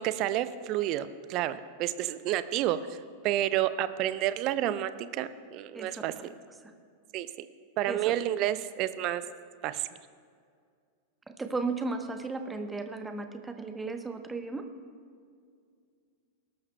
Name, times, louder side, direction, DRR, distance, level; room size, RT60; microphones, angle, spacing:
voice 1, 0.0-6.1 7.1-7.5 7.8-9.2 9.6-9.9, right 12 dB, 40° right, 13 dB, 0.5 m, -30 dB
voice 2, 5.7-6.1 6.6-6.7 7.9-8.1 11.3-14.6, right 3 dB, 10° right, 7 dB, 0.9 m, -35 dB
19.5 x 12.5 x 2.2 m, 2.1 s
figure-of-eight pair, 90°, 0 cm